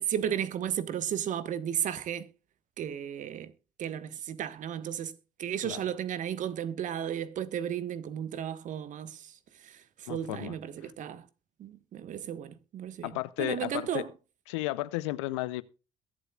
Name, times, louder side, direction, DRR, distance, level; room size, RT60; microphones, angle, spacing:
voice 1, 0.0-2.3 2.8-3.5 3.8-5.1 5.4-9.3 9.6-9.7 10.0-11.2 11.6-13.1 13.4-14.1, right 9 dB, 60° right, 1.3 m, -34 dB
voice 2, 10.1-10.5 10.8-10.9 13.0-14.1 14.5-15.6, left 18 dB, 80° left, 0.6 m, -33 dB
22.0 x 7.9 x 2.4 m
hypercardioid pair, 50°, 15 cm